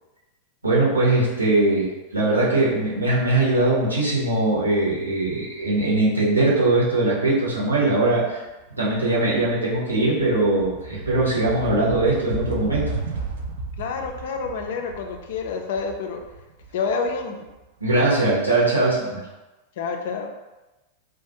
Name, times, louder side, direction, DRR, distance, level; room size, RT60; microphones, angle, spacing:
voice 1, 0.6-8.4 8.8-12.9 17.8-19.2, right 2 dB, 80° right, -6 dB, 0.8 m, -21 dB
sound 1, 8.4-8.7 9.0-17.9, right 3 dB, 60° right, 0.3 m, -34 dB
voice 2, 9.1-9.4 13.8-16.2 16.7-17.5 19.8-20.3, left 5 dB, 55° left, 3 dB, 0.3 m, -28 dB
2.4 x 2.3 x 2.7 m, 1.1 s
figure-of-eight pair, 90°, 0 cm